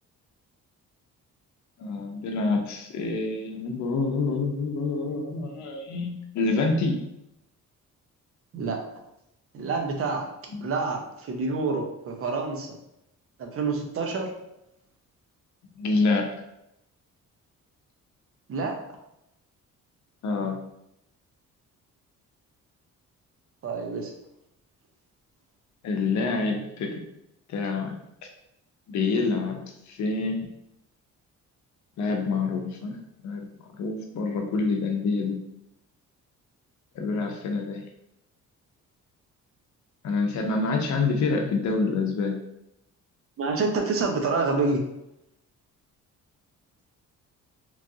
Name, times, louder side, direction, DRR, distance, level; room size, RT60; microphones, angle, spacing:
voice 1, 1.8-7.0 10.5-10.7 15.8-16.3 20.2-20.6 25.8-27.0 27.5-28.0 28.9-30.4 32.0-33.0 33.2-33.5 33.8-35.4 36.9-37.8 40.0-42.4, left 3 dB, 65° left, 2 dB, 0.7 m, -27 dB
voice 2, 9.5-10.3 10.6-12.7 13.4-14.3 18.5-18.7 23.6-24.1 43.4-44.8, right 4 dB, 45° right, 3 dB, 0.6 m, -27 dB
3.1 x 2.4 x 2.6 m, 0.83 s
cardioid pair, 110°, 31 cm